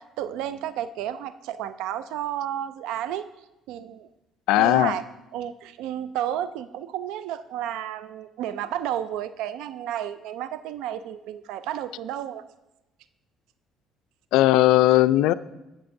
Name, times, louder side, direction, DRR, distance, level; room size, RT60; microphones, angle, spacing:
voice 1, 0.0-3.3 3.7-4.1 4.6-5.0 5.3-12.4, right 11 dB, 90° right, 13 dB, 0.3 m, -32 dB
voice 2, 4.5-5.0 14.3-15.3, left 15 dB, 90° left, 15 dB, 0.3 m, -18 dB
18.5 x 6.5 x 2.6 m, 0.98 s
cardioid pair, 125°, 0 cm